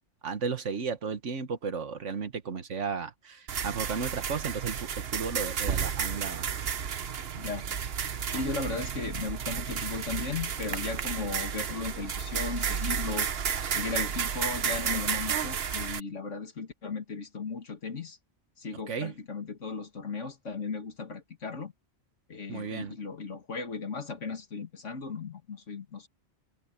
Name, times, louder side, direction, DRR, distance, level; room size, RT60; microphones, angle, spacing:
voice 1, 0.2-6.5 18.9-19.1 22.5-22.9, right 5 dB, 80° right, 1.7 m, -34 dB
sound 1, 3.5-16.0, right 7 dB, 60° right, 1.1 m, -32 dB
voice 2, 8.1-13.3 13.7-18.2 18.6-21.7 22.3-26.1, left 4 dB, 85° left, 2.4 m, -36 dB
omnidirectional pair, 1.2 m